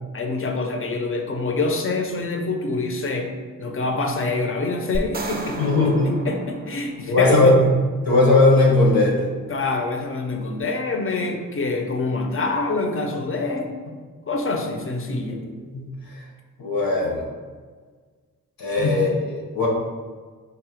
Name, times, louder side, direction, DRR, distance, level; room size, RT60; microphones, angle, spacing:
voice 1, 0.1-3.3 3.6-7.6 9.5-14.0 14.3-15.4 18.8-19.0, left 3 dB, 40° left, 3 dB, 0.5 m, -26 dB
sound 1, 4.9-7.3, right 2 dB, 25° right, 0.4 m, -33 dB
voice 2, 5.6-6.3 7.1-7.6 8.1-9.3 15.1-15.4 15.7-16.2 16.6-17.2 18.6-19.2 19.5-19.7, left 2 dB, 85° left, -2 dB, 1.0 m, -18 dB
3.8 x 2.1 x 4.4 m, 1.5 s
wide cardioid pair, 75°, 35 cm